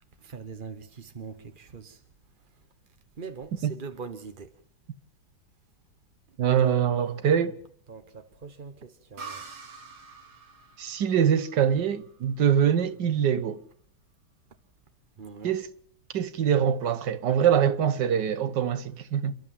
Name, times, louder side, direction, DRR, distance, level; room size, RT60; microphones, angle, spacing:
voice 1, 0.2-2.0 3.2-4.6 6.5-6.7 7.9-9.4 15.2-15.6, right 5 dB, 40° right, 0.8 m, -42 dB
voice 2, 6.4-7.5 10.8-13.6 15.4-15.7 16.1-19.4, right 8 dB, 60° right, 1.6 m, -24 dB
sound 1, 9.2-12.7, right 4 dB, 90° right, 2.6 m, -46 dB
29.0 x 12.0 x 7.6 m
omnidirectional pair, 2.3 m